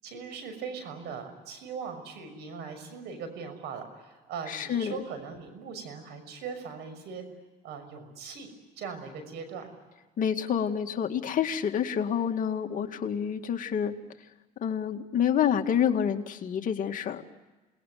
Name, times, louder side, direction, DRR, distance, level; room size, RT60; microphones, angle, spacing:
voice 1, 0.0-7.2 7.6-8.5 8.8-9.7, right 6 dB, 85° right, 9 dB, 6.2 m, -40 dB
voice 2, 4.5-5.0 10.2-13.9 14.6-17.2, left 8 dB, 50° left, 4 dB, 2.2 m, -28 dB
28.0 x 20.0 x 9.4 m, 1.2 s
cardioid pair, 110°, 17 cm